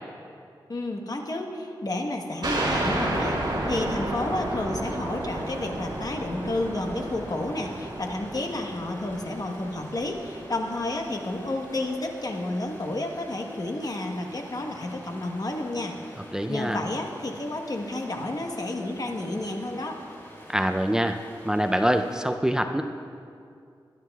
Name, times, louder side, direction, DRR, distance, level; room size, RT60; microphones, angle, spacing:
voice 1, 0.7-15.9 16.5-20.0, left 2 dB, 50° left, 3 dB, 1.2 m, -31 dB
sound 1, 2.4-11.6, right 1 dB, 60° right, 2.6 m, -32 dB
sound 2, 2.6-22.2, equal, 30° left, 3.2 m, -48 dB
voice 2, 16.3-16.8 20.5-21.2 21.5-22.8, equal, 10° right, 6 dB, 0.4 m, -24 dB
20.0 x 11.0 x 2.3 m, 2.4 s
wide cardioid pair, 70°, 8 cm